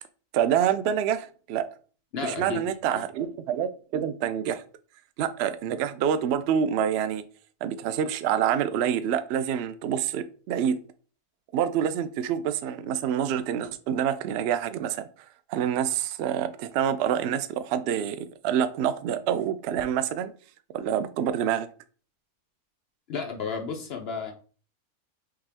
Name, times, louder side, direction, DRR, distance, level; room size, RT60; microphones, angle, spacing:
voice 1, 0.3-1.7 2.2-4.6 5.2-7.2 7.6-10.8 11.5-20.3 20.7-21.7, right 9 dB, 75° right, 11 dB, 0.6 m, -27 dB
voice 2, 2.1-3.0 23.1-24.3, left 5 dB, 55° left, 3 dB, 0.7 m, -33 dB
5.7 x 2.5 x 3.3 m, 0.40 s
omnidirectional pair, 1.6 m